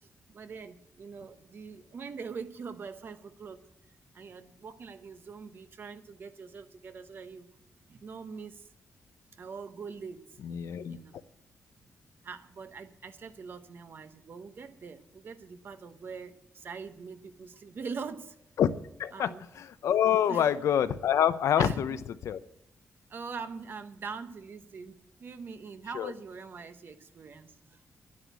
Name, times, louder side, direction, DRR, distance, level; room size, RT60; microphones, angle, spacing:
voice 1, 0.0-3.6 4.1-7.5 7.9-8.7 9.3-10.4 10.9-11.2 12.2-18.4 19.1-19.4 20.3-20.5 21.6-21.8 23.1-27.8, right 5 dB, 45° right, 10 dB, 0.9 m, -43 dB
voice 2, 10.4-11.0 18.6-18.7 19.0-22.0 22.2-22.4 25.9-26.1, left 9 dB, 85° left, 12 dB, 0.7 m, -26 dB
11.5 x 9.7 x 8.2 m, 0.81 s
wide cardioid pair, 165°, 5 cm